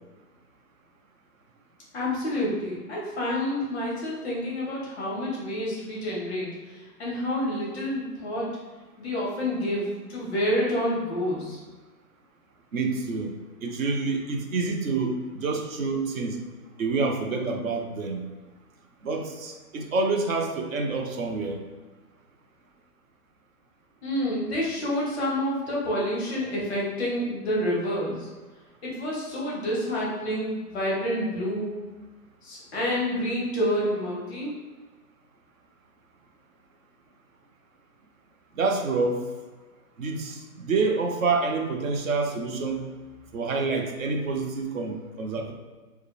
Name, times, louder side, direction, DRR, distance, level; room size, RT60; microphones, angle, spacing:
voice 1, 1.9-8.5 9.0-11.6 24.0-28.3 28.8-31.8 32.4-34.6, equal, 5° left, -5 dB, 0.6 m, -28 dB
voice 2, 12.7-13.3 13.6-16.4 16.8-18.2 19.0-21.6 38.5-39.3 40.0-42.9 43.3-45.5, right 3 dB, 60° right, 3 dB, 0.8 m, -27 dB
4.7 x 2.2 x 3.3 m, 1.3 s
hypercardioid pair, 165°, 46 cm